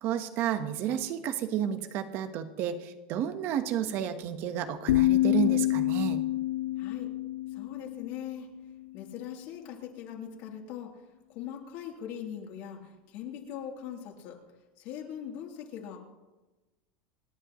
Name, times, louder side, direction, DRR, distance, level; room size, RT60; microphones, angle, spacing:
voice 1, 0.0-6.2, right 9 dB, 45° right, 9 dB, 1.2 m, -31 dB
sound 1, 4.9-8.8, left 16 dB, 80° left, 0.4 m, -27 dB
voice 2, 6.8-7.1 7.5-8.5 8.9-10.9 11.3-14.4 14.8-16.0, left 9 dB, 55° left, 0 dB, 3.3 m, -41 dB
28.0 x 11.0 x 3.1 m, 1.1 s
supercardioid pair, 165°, 6 cm